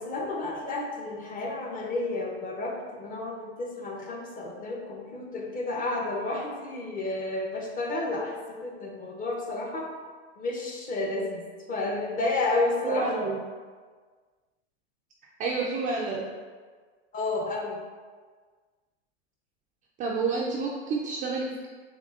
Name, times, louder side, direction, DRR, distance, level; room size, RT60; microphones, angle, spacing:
voice 1, 0.0-9.9 10.4-11.4 11.7-13.2 17.1-17.8, left 2 dB, 25° left, 0 dB, 0.7 m, -31 dB
voice 2, 12.8-13.4 15.4-16.3 20.0-21.7, right 3 dB, 25° right, -3 dB, 0.3 m, -29 dB
7.0 x 2.4 x 2.4 m, 1.5 s
hypercardioid pair, 115°, 34 cm